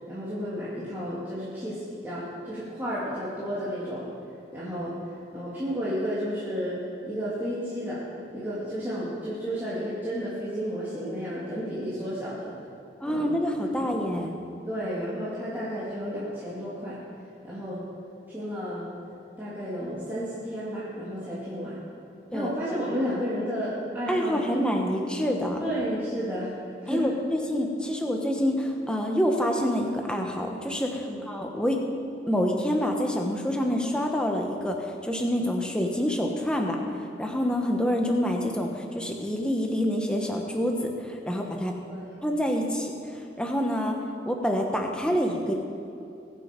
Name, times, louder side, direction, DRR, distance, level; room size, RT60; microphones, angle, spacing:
voice 1, 0.1-4.1 4.5-5.0 5.3-8.0 8.3-12.5 13.0-13.3 13.7-13.9 14.7-17.0 17.4-17.9 18.3-19.0 19.4-21.8 22.3-24.7 25.6-26.5 26.8-27.1 31.1-31.3 41.9-42.2, equal, 10° right, -11 dB, 2.5 m, -32 dB
voice 2, 13.0-14.3 22.3-22.5 24.1-25.6 26.9-31.8 32.3-36.8 37.2-41.7 42.2-44.0 44.3-45.5, equal, 5° left, 1 dB, 1.2 m, -27 dB
21.5 x 7.6 x 5.3 m, 2.5 s
head